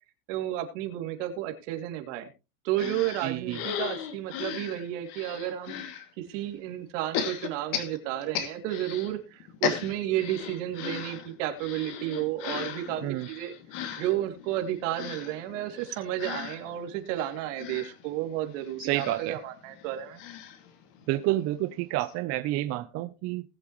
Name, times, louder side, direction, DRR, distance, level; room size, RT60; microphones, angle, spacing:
voice 1, 0.3-2.3 2.6-5.8 6.2-13.5 14.0-20.2, right 13 dB, 70° right, 5 dB, 2.9 m, -32 dB
sound 1, 2.8-6.0 7.1-9.1 9.4-21.3 21.7-21.8 22.0-22.1, left 8 dB, 55° left, 2.7 m, -37 dB
voice 2, 3.2-3.6 13.0-13.3 18.8-19.4 21.1-23.4, right 16 dB, 40° right, 9 dB, 0.8 m, -29 dB
19.5 x 7.7 x 3.1 m, 0.28 s
supercardioid pair, 150°, 39 cm